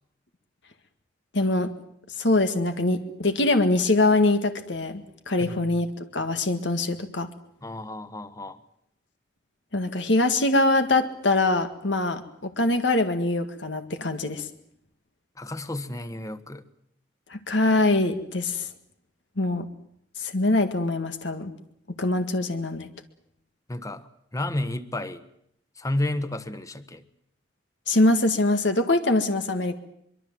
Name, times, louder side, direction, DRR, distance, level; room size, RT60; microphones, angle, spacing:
voice 1, 1.3-1.7 2.2-5.9 6.1-7.3 9.7-14.5 17.3-18.7 19.4-19.7 20.2-21.5 22.0-22.9 27.9-29.7, left 2 dB, 80° left, 7 dB, 2.0 m, -23 dB
voice 2, 7.6-8.6 15.4-16.6 23.7-24.1 24.3-25.2 25.8-27.0, left 1 dB, 20° left, 13 dB, 1.3 m, -31 dB
24.0 x 23.5 x 7.7 m, 0.73 s
head